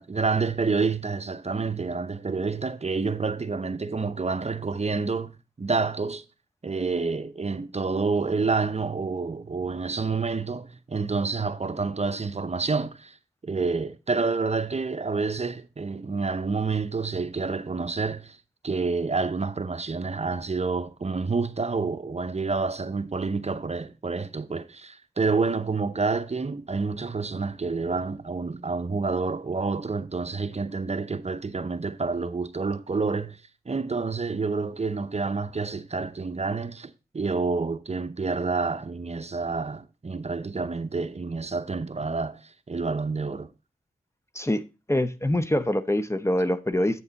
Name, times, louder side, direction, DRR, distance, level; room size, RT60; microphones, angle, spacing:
voice 1, 0.0-5.3 5.6-6.2 6.6-13.2 13.4-18.4 18.6-43.5, right 4 dB, 45° right, 0.8 m, -28 dB
voice 2, 44.9-47.0, left 1 dB, 15° left, 0.8 m, -24 dB
8.7 x 6.7 x 4.0 m
cardioid pair, 45°, 16 cm